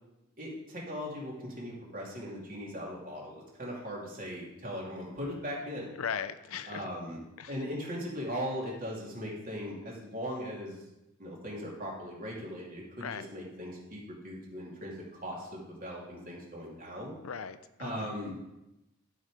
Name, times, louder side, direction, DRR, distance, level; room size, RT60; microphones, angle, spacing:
voice 1, 0.4-5.9 6.7-7.2 7.5-10.8 11.2-17.1 17.8-18.4, equal, 40° right, -3 dB, 2.8 m, -39 dB
voice 2, 6.0-6.9 7.4-7.5 13.0-13.2 17.2-18.1, left 7 dB, 70° left, 12 dB, 0.5 m, -38 dB
11.5 x 5.5 x 4.9 m, 0.93 s
head